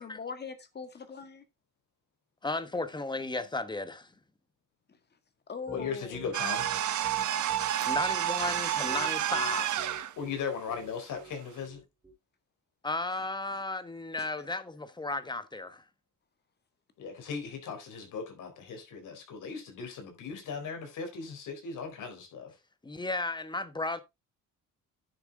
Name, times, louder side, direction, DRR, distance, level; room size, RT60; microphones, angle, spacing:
voice 1, 0.0-1.4 5.5-6.2 14.2-14.3, left 5 dB, 30° left, 1.8 m, -41 dB
voice 2, 2.4-4.1 7.9-9.9 12.8-15.8 22.8-24.0, left 2 dB, 15° left, 1.0 m, -34 dB
voice 3, 5.7-6.7 10.2-11.8 17.0-22.5, left 6 dB, 75° left, 4.1 m, -38 dB
Piano, 5.7-12.1, right 4 dB, 10° right, 2.5 m, -47 dB
sound 1, 6.3-10.1, right 11 dB, 65° right, 1.2 m, -30 dB
10.0 x 6.9 x 3.6 m
cardioid pair, 135°, 31 cm